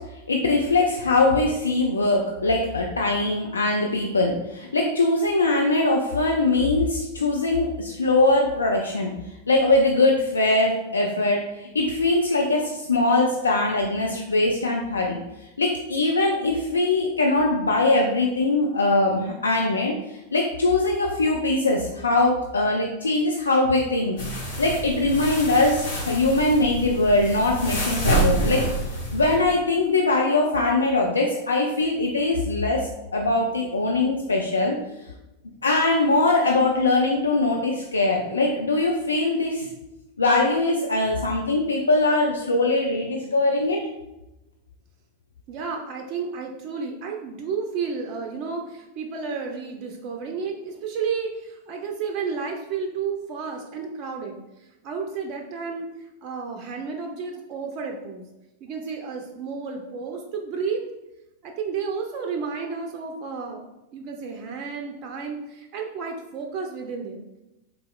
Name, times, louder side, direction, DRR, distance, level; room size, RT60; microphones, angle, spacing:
voice 1, 0.0-34.8 35.6-39.7 40.2-43.8, left 2 dB, 75° left, 0 dB, 0.3 m, -22 dB
sound 1, 24.2-29.4, right 2 dB, 60° left, 1.0 m, -27 dB
voice 2, 45.5-58.2 58.6-60.8 61.4-63.6 63.9-67.2, right 5 dB, 40° right, 2 dB, 0.3 m, -32 dB
3.9 x 2.8 x 2.2 m, 0.95 s
figure-of-eight pair, 90°, 0 cm